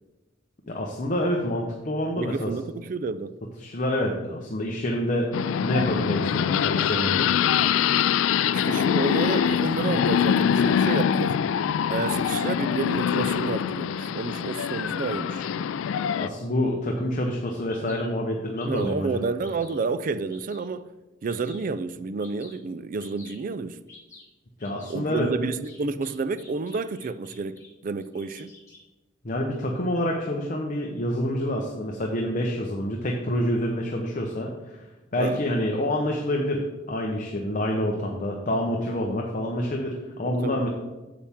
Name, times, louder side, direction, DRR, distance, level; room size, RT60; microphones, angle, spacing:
voice 1, 0.7-2.5 3.6-5.3 5.6-7.3 16.1-19.3 24.6-25.3 29.2-34.8 35.1-40.7, left 1 dB, 40° left, 0.9 m, -27 dB
voice 2, 2.2-3.4 8.5-11.4 11.9-15.5 18.7-20.9 21.2-23.8 24.9-28.5 35.2-35.4 40.3-40.6, right 4 dB, 45° right, 0.4 m, -30 dB
sound 1, 5.3-16.3, left 8 dB, 85° left, 0.3 m, -24 dB
Bird vocalization bird call bird song, 17.7-18.1 18.6-19.0 19.4-19.8 20.3-20.7 21.2-21.7 22.2-22.6 23.0-23.4 23.9-24.2 24.6-24.9 25.6-27.7 28.0-28.8, left 3 dB, 15° left, 2.8 m, -50 dB
8.5 x 7.3 x 3.6 m
head